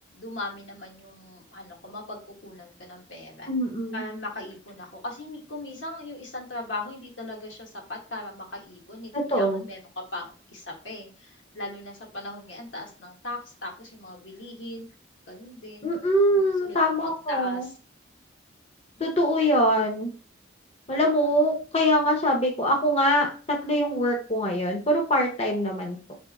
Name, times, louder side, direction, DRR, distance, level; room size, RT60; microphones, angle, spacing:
voice 1, 0.1-3.5 3.9-9.8 10.1-14.9 15.3-15.9 16.3-16.8 17.0-17.7, left 2 dB, 80° left, -1 dB, 1.4 m, -39 dB
voice 2, 3.5-4.0 9.1-9.6 15.8-17.7 19.0-20.1 20.9-26.1, equal, 30° left, 1 dB, 0.7 m, -23 dB
3.5 x 3.1 x 4.0 m, 0.37 s
head